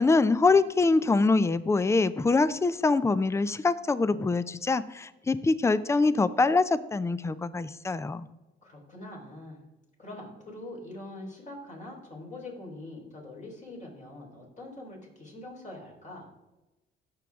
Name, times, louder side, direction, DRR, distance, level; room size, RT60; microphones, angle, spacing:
voice 1, 0.0-8.3, left 3 dB, 15° left, 16 dB, 0.4 m, -24 dB
voice 2, 8.6-9.6 10.0-16.3, left 2 dB, 40° left, -2 dB, 3.8 m, -43 dB
15.5 x 6.2 x 3.5 m, 1.0 s
cardioid pair, 90°, 20 cm